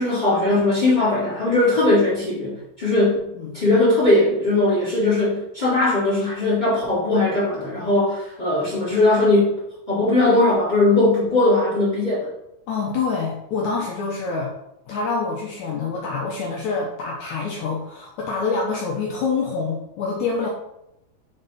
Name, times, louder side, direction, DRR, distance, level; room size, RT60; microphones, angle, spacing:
voice 1, 0.0-9.6 9.9-12.3, left 2 dB, 20° left, -8 dB, 1.4 m, -19 dB
voice 2, 12.7-14.5 14.9-20.5, left 4 dB, 85° left, -2 dB, 1.6 m, -26 dB
5.2 x 4.6 x 4.1 m, 0.85 s
omnidirectional pair, 4.3 m